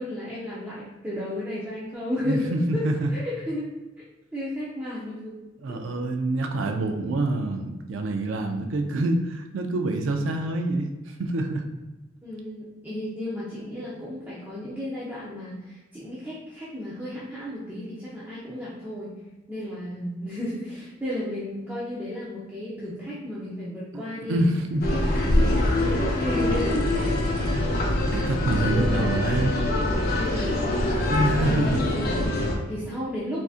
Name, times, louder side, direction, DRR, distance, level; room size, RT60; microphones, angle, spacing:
voice 1, 0.0-2.8 3.1-3.7 4.3-5.3 5.7-5.8 12.2-19.1 19.5-24.4 24.7-27.2 28.6-29.3 30.1-33.4, left 1 dB, 10° right, -9 dB, 0.5 m, -34 dB
voice 2, 2.3-3.1 5.6-11.7 23.9-24.0 24.3-24.8 25.4-25.6 28.1-29.7 31.1-31.8, right 2 dB, 80° right, 5 dB, 0.4 m, -26 dB
sound 1, 24.8-32.6, left 1 dB, 55° left, 0.6 m, -24 dB
3.6 x 2.5 x 2.4 m, 1.1 s
head